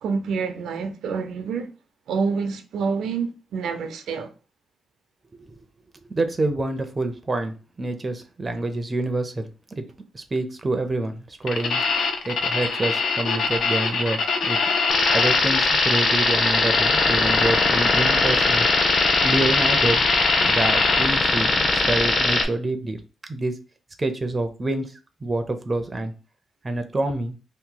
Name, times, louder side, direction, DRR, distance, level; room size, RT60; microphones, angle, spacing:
voice 1, 0.0-1.7 2.1-4.3, right 5 dB, 90° right, 0.5 m, -27 dB
voice 2, 6.1-9.5 9.8-9.9 10.1-11.8 12.2-14.6 15.1-18.7 19.2-20.0 20.4-23.0 23.3-23.5 24.0-24.9 25.2-26.1 26.6-27.4, right 2 dB, 20° right, 0.5 m, -27 dB
sound 1, 11.5-21.1, left 4 dB, 70° left, 0.6 m, -24 dB
sound 2, 14.9-22.5, left 2 dB, 40° left, 0.7 m, -21 dB
2.9 x 2.6 x 3.7 m
wide cardioid pair, 160°, 0 cm